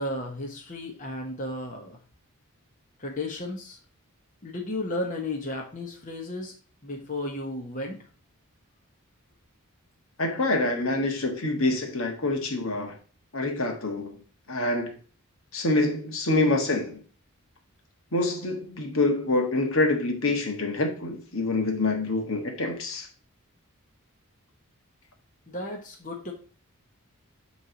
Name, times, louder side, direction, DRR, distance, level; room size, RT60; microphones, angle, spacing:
voice 1, 0.0-2.0 3.0-3.8 4.4-6.5 6.8-8.0 25.5-26.3, left 1 dB, 35° left, 0 dB, 1.1 m, -33 dB
voice 2, 10.2-12.9 13.3-14.2 14.5-14.9 15.5-17.0 18.1-23.1, left 2 dB, 65° left, 3 dB, 1.4 m, -26 dB
8.5 x 3.3 x 5.2 m, 0.39 s
head